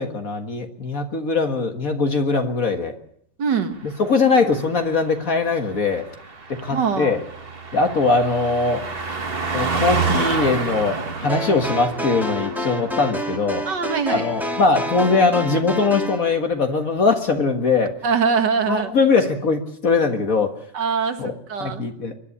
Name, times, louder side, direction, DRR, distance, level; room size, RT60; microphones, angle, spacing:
voice 1, 0.0-3.0 3.8-6.1 6.5-7.2 7.7-8.9 9.5-13.7 14.1-17.9 18.7-20.5 21.2-21.3 21.6-22.2, left 4 dB, 55° left, 5 dB, 2.0 m, -21 dB
voice 2, 3.4-3.8 6.7-7.1 13.7-14.3 18.0-18.9 20.7-21.8, right 6 dB, 80° right, 8 dB, 2.3 m, -22 dB
Car passing by, 3.8-15.7 16.0-16.3, right 4 dB, 35° right, 1.7 m, -30 dB
sound 1, 11.3-16.2, left 1 dB, ahead, 2.3 m, -28 dB
23.5 x 11.0 x 9.9 m, 0.67 s
omnidirectional pair, 1.9 m